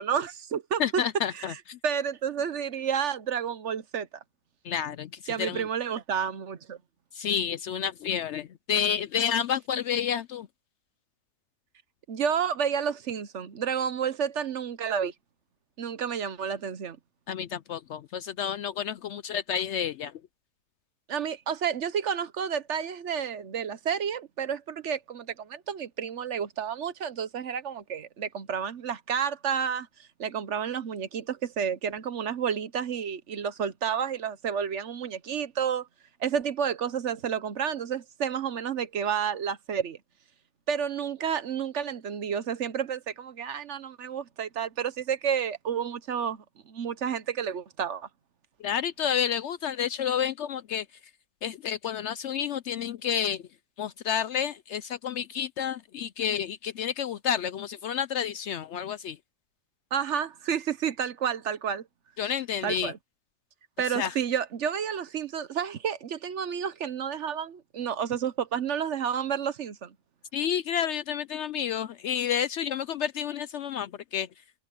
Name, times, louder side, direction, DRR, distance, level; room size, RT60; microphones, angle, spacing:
voice 1, 0.0-1.0 1.3-4.1 5.3-6.8 12.1-15.1 15.8-17.0 21.1-29.9 30.2-35.9 36.2-40.0 40.7-48.1 59.9-61.8 62.6-63.0 63.8-69.9, right 7 dB, 60° right, 1.1 m, -30 dB
voice 2, 0.8-1.8 4.6-5.1 5.4-5.6 7.2-10.5 17.3-20.1 48.6-50.8 51.4-53.4 53.8-59.2 62.2-62.9 64.0-64.1 70.3-74.3, left 8 dB, 65° left, 0.7 m, -30 dB
omnidirectional pair, 1.5 m